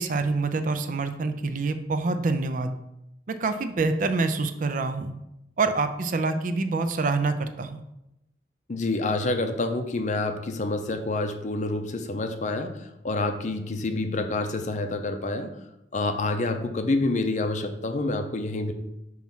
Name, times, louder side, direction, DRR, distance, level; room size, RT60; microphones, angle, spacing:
voice 1, 0.0-2.7 3.3-5.1 5.6-7.8, right 3 dB, 45° right, 9 dB, 0.4 m, -26 dB
voice 2, 8.7-15.6 15.9-18.7, left 2 dB, 40° left, 7 dB, 0.5 m, -28 dB
5.7 x 3.1 x 5.5 m, 0.86 s
head